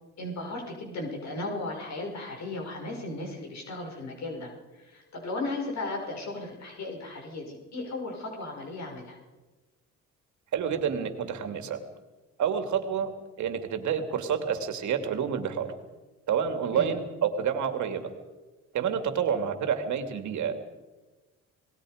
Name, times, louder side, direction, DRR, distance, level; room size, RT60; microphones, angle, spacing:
voice 1, 0.2-9.2 16.7-16.9, left 2 dB, 65° left, 0 dB, 5.9 m, -36 dB
voice 2, 10.5-11.8 12.4-13.1 13.4-15.7 16.3-18.1 18.7-20.5, right 7 dB, 70° right, 7 dB, 2.6 m, -28 dB
27.5 x 19.0 x 5.1 m, 1.2 s
cardioid pair, 90°, 30 cm